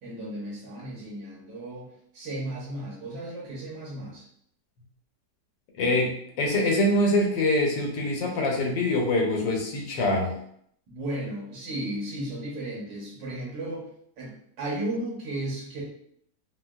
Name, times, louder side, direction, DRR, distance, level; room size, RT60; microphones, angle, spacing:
voice 1, 0.0-4.2 10.9-13.9 14.2-15.8, right 1 dB, 90° right, -4 dB, 1.7 m, -34 dB
voice 2, 5.8-10.4, left 1 dB, 85° left, 0 dB, 1.4 m, -24 dB
3.9 x 2.2 x 2.3 m, 0.68 s
omnidirectional pair, 1.9 m